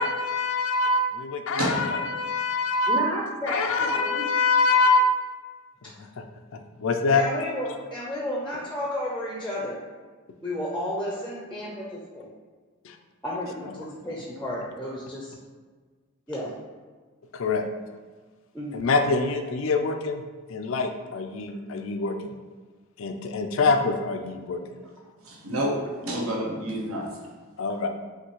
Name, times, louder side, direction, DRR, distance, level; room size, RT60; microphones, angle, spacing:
voice 1, 0.0-3.1 3.5-5.3 5.8-6.2 6.8-7.2 12.8-13.0 13.8-13.9 17.3-17.6 18.7-20.2 20.5-22.3 23.0-24.8 27.6-27.9, left 3 dB, 65° left, 6 dB, 0.4 m, -25 dB
voice 2, 2.9-4.3 7.1-9.8 10.4-12.3 13.2-15.3 16.3-16.5 18.5-18.8, left 1 dB, 5° left, -4 dB, 0.5 m, -32 dB
voice 3, 25.2-27.1, right 1 dB, 75° right, -2 dB, 1.0 m, -29 dB
5.7 x 2.7 x 3.0 m, 1.4 s
head